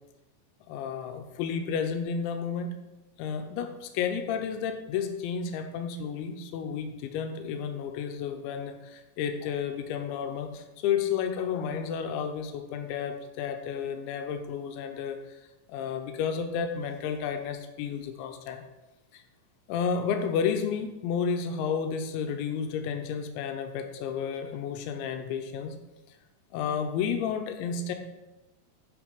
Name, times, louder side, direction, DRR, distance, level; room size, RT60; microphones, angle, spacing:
voice 1, 0.7-2.7 3.2-15.4 15.7-18.6 19.1-19.2 19.7-25.8 26.5-27.9, left 7 dB, 90° left, 5 dB, 3.1 m, -31 dB
10.5 x 6.1 x 5.2 m, 1.0 s
omnidirectional pair, 5.2 m